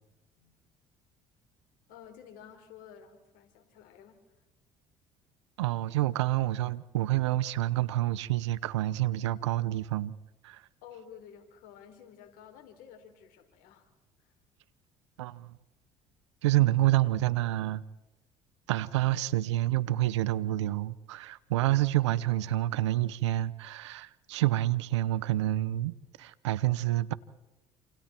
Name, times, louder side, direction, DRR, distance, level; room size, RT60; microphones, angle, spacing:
voice 1, 1.9-4.2 10.8-13.9 14.2-14.3, left 8 dB, 70° left, 4.3 m, -52 dB
voice 2, 5.6-10.1 10.4-10.6 15.2-15.6 16.4-17.8 18.7-27.1, right 15 dB, 90° right, 0.9 m, -28 dB
28.5 x 27.0 x 4.5 m
hypercardioid pair, 65°, 15 cm